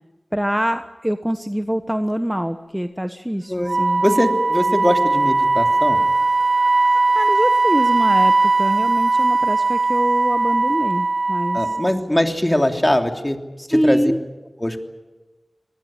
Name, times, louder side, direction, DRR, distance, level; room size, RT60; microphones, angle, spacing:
voice 1, 0.3-4.0 7.1-11.6 13.6-14.2, equal, 10° right, 8 dB, 1.2 m, -24 dB
voice 2, 3.5-6.0 11.5-13.4 13.7-14.1 14.6-14.8, left 1 dB, 20° left, 5 dB, 3.1 m, -21 dB
Wind instrument woodwind instrument, 3.7-11.9, right 3 dB, 75° right, 1.1 m, -19 dB
25.5 x 19.5 x 9.0 m, 1.2 s
wide cardioid pair, 40°, 0 cm